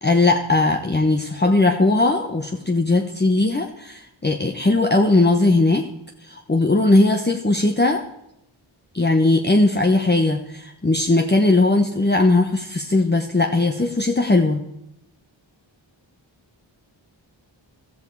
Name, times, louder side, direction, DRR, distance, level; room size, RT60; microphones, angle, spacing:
voice 1, 0.0-5.9 6.2-8.0 8.9-14.6, left 2 dB, 20° left, 4 dB, 1.1 m, -18 dB
14.5 x 13.5 x 4.8 m, 0.83 s
wide cardioid pair, 75°, 47 cm